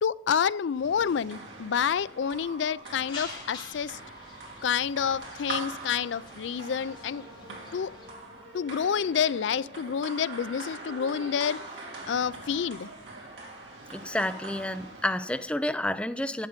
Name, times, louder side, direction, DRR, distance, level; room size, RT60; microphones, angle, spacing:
voice 1, 0.0-4.0 4.6-7.2 7.7-7.9 8.5-11.6 12.1-12.9, left 7 dB, 80° left, 18 dB, 0.4 m, -28 dB
sound 1, 0.7-15.6, right 3 dB, 75° right, 2.9 m, -43 dB
sound 2, 2.8-8.1, left 3 dB, 30° left, 2.8 m, -46 dB
voice 2, 13.9-16.5, left 1 dB, 5° left, 10 dB, 0.4 m, -30 dB
11.5 x 8.2 x 5.2 m, 0.83 s
head